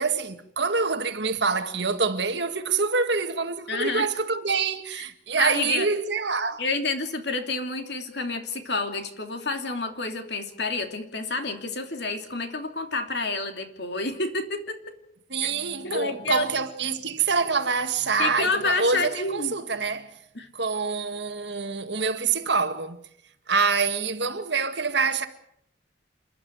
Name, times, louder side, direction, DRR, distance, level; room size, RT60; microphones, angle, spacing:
voice 1, 0.0-6.6 15.3-20.1 20.5-23.0 23.5-25.3, right 4 dB, 65° right, 1.8 m, -26 dB
voice 2, 3.7-4.1 4.9-5.0 5.4-5.9 6.6-14.9 15.4-15.5 15.8-16.5 18.2-19.5 20.3-20.5, left 3 dB, 60° left, 3.0 m, -29 dB
29.0 x 11.5 x 9.3 m
head